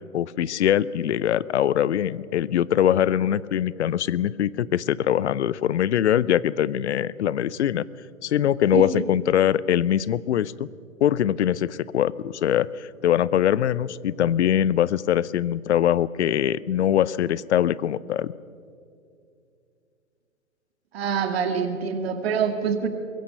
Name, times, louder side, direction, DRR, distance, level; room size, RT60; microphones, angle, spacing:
voice 1, 0.1-7.9 8.2-10.7 11.0-18.3, left 10 dB, 55° left, 20 dB, 0.7 m, -22 dB
voice 2, 8.7-9.0 20.9-22.9, right 6 dB, 45° right, 7 dB, 1.9 m, -25 dB
23.5 x 22.0 x 5.7 m, 2.5 s
hypercardioid pair, 135°, 41 cm